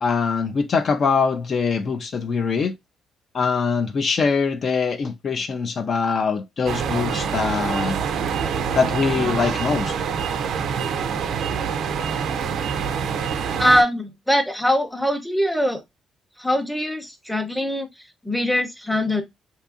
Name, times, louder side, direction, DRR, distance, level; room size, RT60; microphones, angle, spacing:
voice 1, 0.0-2.7 3.3-8.0 8.7-9.9, left 5 dB, 50° left, 0.3 m, -23 dB
sound 1, 6.7-13.8, right 7 dB, 70° right, 0.4 m, -25 dB
voice 2, 13.6-15.8 16.4-17.9 18.2-19.2, equal, ahead, 0.6 m, -22 dB
2.6 x 2.4 x 2.4 m
cardioid pair, 90°, 0 cm